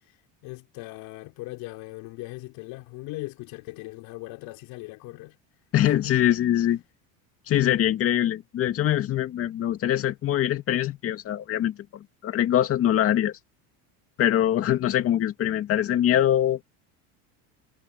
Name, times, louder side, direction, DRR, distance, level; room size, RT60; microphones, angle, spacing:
voice 1, 0.4-5.4 5.8-6.2, left 21 dB, 65° left, 4.1 m, -39 dB
voice 2, 5.7-6.8 7.5-13.3 14.2-16.6, left 11 dB, 35° left, 2.3 m, -23 dB
cardioid pair, 165°, 38 cm